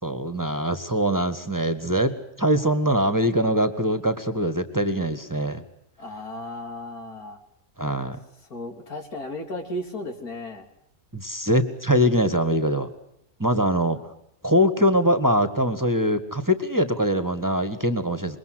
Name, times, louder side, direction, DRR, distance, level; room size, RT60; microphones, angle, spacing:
voice 1, 0.0-5.6 7.8-8.2 11.1-12.9 13.4-14.0 14.4-18.4, equal, 15° right, 10 dB, 1.8 m, -23 dB
voice 2, 6.0-7.4 8.4-10.7, left 1 dB, 85° left, 5 dB, 3.9 m, -35 dB
26.5 x 22.5 x 7.8 m, 0.75 s
omnidirectional pair, 1.5 m